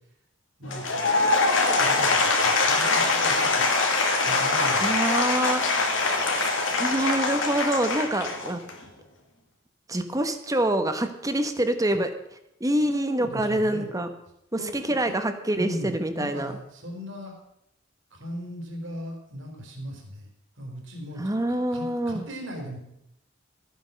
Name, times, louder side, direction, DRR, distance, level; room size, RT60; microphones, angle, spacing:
Applause / Crowd, 0.6-8.8, left 3 dB, 80° left, 2.5 m, -23 dB
voice 1, 0.6-1.2 1.7-2.2 2.4-3.7 4.3-4.9 12.9-13.9 14.6-15.1 15.5-17.3 18.1-20.3 20.6-21.2 21.5-22.8, equal, 70° right, 1 dB, 4.1 m, -38 dB
voice 2, 4.8-5.9 6.8-8.6 9.9-12.1 12.6-14.1 14.5-16.5 21.2-22.2, right 1 dB, 20° right, 8 dB, 1.1 m, -26 dB
14.0 x 9.2 x 6.4 m, 0.81 s
head